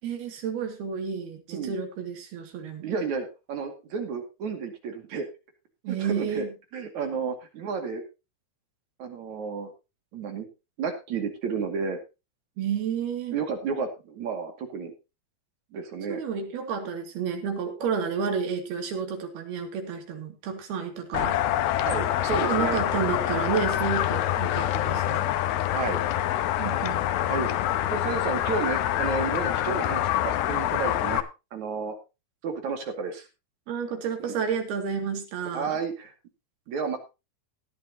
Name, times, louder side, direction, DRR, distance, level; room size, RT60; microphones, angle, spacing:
voice 1, 0.0-2.9 5.8-6.5 12.6-13.4 16.1-21.4 22.4-25.3 26.6-27.0 33.7-35.8, right 6 dB, 85° right, 4 dB, 4.5 m, -31 dB
voice 2, 2.8-5.3 5.9-6.5 6.7-8.0 9.0-9.7 10.1-10.5 10.8-12.0 13.3-14.9 15.7-16.2 21.8-22.8 25.7-26.0 27.3-27.5 27.9-31.2 31.5-31.9 32.4-33.3 34.2-34.3 35.5-36.1 36.7-37.0, right 5 dB, 55° right, 5 dB, 3.4 m, -31 dB
sound 1, 21.1-31.2, left 12 dB, 85° left, 2.8 m, -26 dB
16.5 x 11.5 x 2.9 m, 0.27 s
omnidirectional pair, 4.3 m